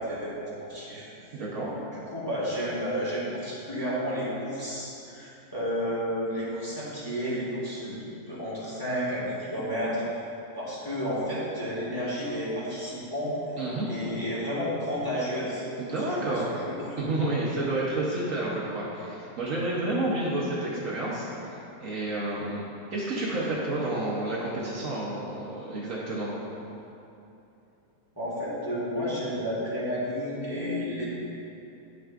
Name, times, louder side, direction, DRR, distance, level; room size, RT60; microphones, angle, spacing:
voice 1, 0.0-1.3 1.7-1.8 2.1-10.0 10.5-13.3 13.9-15.7 16.1-17.0 28.1-31.0, equal, 15° left, -9 dB, 1.5 m, -31 dB
voice 2, 1.3-1.7 13.6-13.9 15.8-16.5 17.0-22.6 22.9-26.3, right 2 dB, 55° right, -6 dB, 1.1 m, -30 dB
9.1 x 6.0 x 2.5 m, 2.8 s
omnidirectional pair, 1.8 m